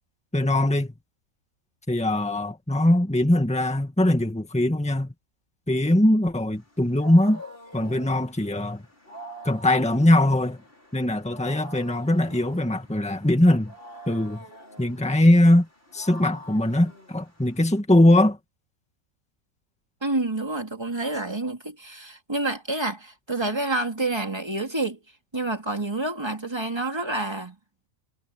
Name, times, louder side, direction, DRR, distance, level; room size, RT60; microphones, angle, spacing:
voice 1, 0.3-0.9 1.9-5.1 5.7-7.4 7.7-8.8 9.4-10.6 10.9-13.7 14.1-14.4 14.8-15.7 15.9-18.4, left 1 dB, 5° left, 1.9 m, -21 dB
Wild animals, 6.6-17.8, equal, 40° left, 6.5 m, -45 dB
voice 2, 20.0-25.0 25.3-27.6, right 2 dB, 20° right, 2.7 m, -28 dB
omnidirectional pair, 1.5 m